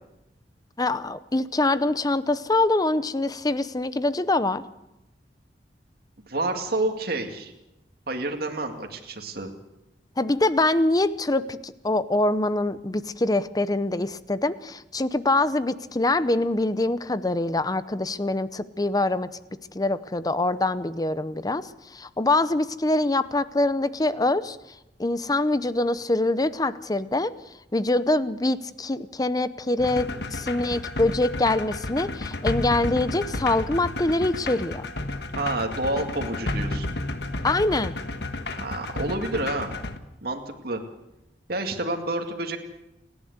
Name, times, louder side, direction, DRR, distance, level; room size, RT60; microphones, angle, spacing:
voice 1, 0.8-4.6 10.2-19.3 19.7-24.6 25.0-27.3 27.7-34.9 37.4-37.9, left 2 dB, 20° left, 14 dB, 0.7 m, -24 dB
voice 2, 6.3-7.5 8.1-9.5 35.4-36.9 38.6-39.7 40.2-40.8 41.5-42.6, right 2 dB, 60° right, 4 dB, 2.2 m, -29 dB
sound 1, 29.8-40.0, left 2 dB, 70° left, 1.5 m, -32 dB
29.5 x 11.0 x 8.0 m, 0.92 s
head